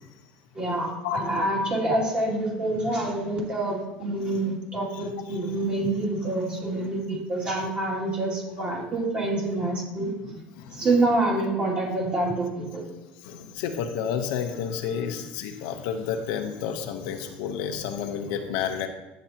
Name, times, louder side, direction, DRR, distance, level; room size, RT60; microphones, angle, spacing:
voice 1, 0.5-10.1 10.7-12.8, right 2 dB, 30° right, -3 dB, 2.5 m, -27 dB
voice 2, 13.2-18.9, left 8 dB, 80° left, 5 dB, 0.9 m, -30 dB
10.5 x 7.9 x 2.9 m, 1.1 s
cardioid pair, 145°, 4 cm